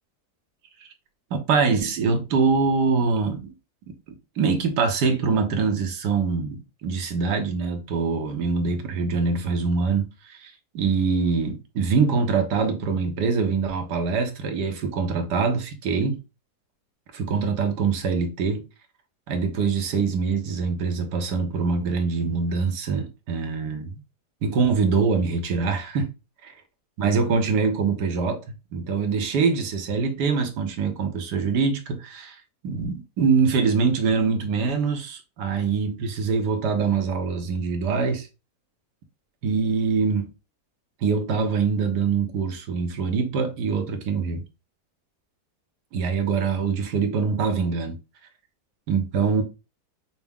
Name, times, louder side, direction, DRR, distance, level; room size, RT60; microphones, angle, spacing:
voice 1, 1.5-3.5 4.4-16.2 17.1-18.7 19.3-24.0 24.4-26.1 27.0-28.4 28.7-32.4 32.6-38.3 39.4-40.3 41.0-44.4 45.9-48.0 48.9-49.4, right 5 dB, 80° right, 1.5 m, -24 dB
5.8 x 2.1 x 3.5 m
omnidirectional pair, 1.8 m